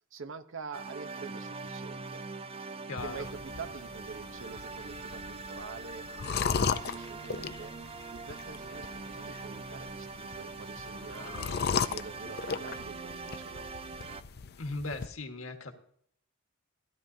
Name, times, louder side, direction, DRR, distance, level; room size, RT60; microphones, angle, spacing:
voice 1, 0.0-2.2 2.5-2.6 3.0-7.8 8.1-11.5 11.8-13.7, right 5 dB, 65° right, 10 dB, 0.8 m, -46 dB
sound 1, 0.7-14.2, right 4 dB, 25° right, 0.4 m, -43 dB
voice 2, 2.9-3.3 14.6-15.7, left 3 dB, 70° left, 5 dB, 1.5 m, -38 dB
sound 2, 3.0-15.1, left 6 dB, 50° left, 0.5 m, -37 dB
16.5 x 11.5 x 2.7 m, 0.65 s
head